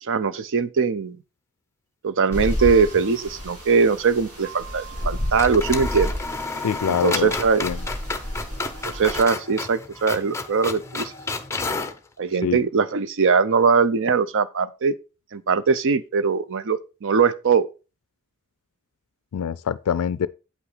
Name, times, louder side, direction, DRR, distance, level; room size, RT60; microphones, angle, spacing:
voice 1, 0.0-1.2 2.0-6.1 6.9-7.6 8.9-11.1 12.2-14.9 15.3-17.7, right 5 dB, 60° right, 0.6 m, -21 dB
sound 1, 2.3-3.1 3.4-3.5 4.9-5.1 5.4-12.0, left 3 dB, 15° left, 0.7 m, -31 dB
sound 2, 2.3-9.2, equal, 80° right, 2.7 m, -31 dB
voice 2, 6.6-7.3 7.6-7.8 12.4-12.6 19.3-20.3, left 8 dB, 70° left, 0.4 m, -24 dB
8.2 x 5.8 x 4.0 m
head